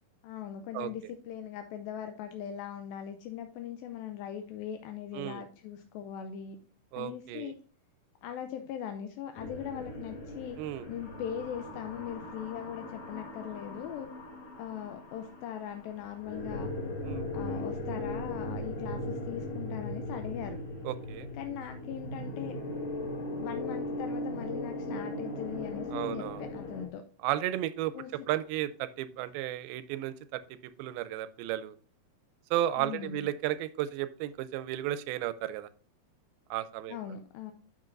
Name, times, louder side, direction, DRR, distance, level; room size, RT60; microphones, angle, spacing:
voice 1, 0.2-6.6 7.0-7.6 8.2-10.6 10.9-14.1 14.6-16.7 17.3-20.6 21.3-22.5 23.4-27.0 27.9-28.3 32.8-33.2 36.9-37.5, left 9 dB, 80° left, 7 dB, 2.3 m, -40 dB
voice 2, 6.9-7.5 10.6-10.9 17.0-17.2 20.8-21.3 25.9-26.4 27.2-27.9 28.3-31.8 32.5-35.7 36.5-37.0, right 13 dB, 90° right, 14 dB, 2.4 m, -33 dB
sound 1, 9.4-26.9, left 1 dB, 50° left, 2.2 m, -38 dB
10.5 x 6.2 x 2.5 m, 0.41 s
omnidirectional pair, 4.3 m